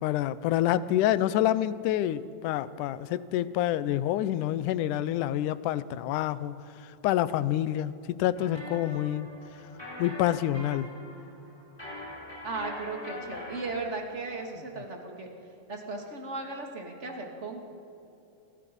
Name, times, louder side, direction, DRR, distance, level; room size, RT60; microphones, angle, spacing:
voice 1, 0.0-6.6 7.0-9.3 10.0-10.9, left 12 dB, 85° left, 15 dB, 2.2 m, -27 dB
sound 1, 8.3-13.8, left 1 dB, 5° left, 5.0 m, -43 dB
voice 2, 12.4-15.3 15.7-17.6, right 3 dB, 25° right, 1 dB, 2.4 m, -36 dB
29.0 x 22.5 x 5.4 m, 2.9 s
omnidirectional pair, 3.5 m